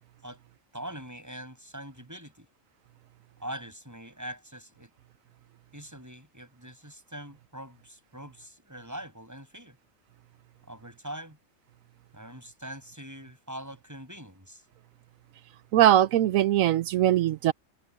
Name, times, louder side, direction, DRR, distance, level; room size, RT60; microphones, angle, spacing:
voice 1, 0.7-2.5 3.4-4.9 5.7-9.8 10.7-11.4 12.1-14.6, right 1 dB, 10° right, 7.4 m, -43 dB
voice 2, 15.7-17.5, right 12 dB, 85° right, 1.0 m, -21 dB
omnidirectional pair, 1.4 m